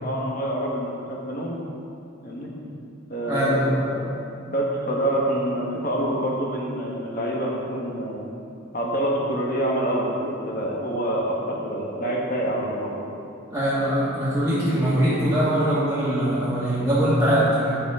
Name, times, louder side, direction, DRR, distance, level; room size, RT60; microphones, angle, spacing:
voice 1, 0.0-1.6 2.2-2.5 3.1-8.2 8.7-13.0, right 1 dB, 40° left, -3 dB, 1.5 m, -26 dB
voice 2, 3.3-3.7 13.5-17.8, right 1 dB, 10° right, -13 dB, 1.7 m, -22 dB
10.5 x 6.9 x 3.8 m, 2.6 s
head